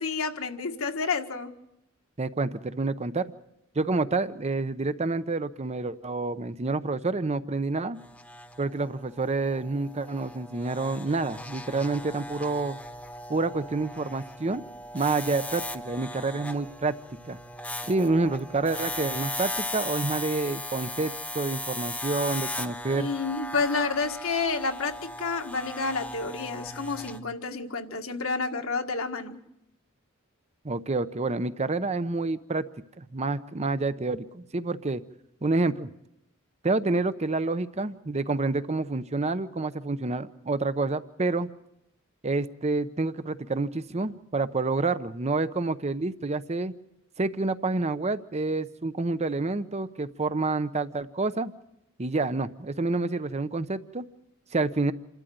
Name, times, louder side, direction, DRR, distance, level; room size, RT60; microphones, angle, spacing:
voice 1, 0.0-1.5 22.9-29.4, left 4 dB, 75° left, 5 dB, 1.8 m, -30 dB
voice 2, 2.2-3.3 3.7-8.0 8.6-12.8 13.3-14.6 14.9-17.0 17.2-17.4 17.9-23.1 30.6-32.7 33.0-35.0 35.4-35.9 36.6-41.5 42.2-46.7 47.2-51.5 52.0-54.0 54.5-54.9, right 3 dB, 30° right, 13 dB, 0.8 m, -28 dB
sound 1, 7.9-27.2, left 1 dB, 5° left, 1.2 m, -38 dB
27.5 x 13.0 x 9.4 m, 0.84 s
head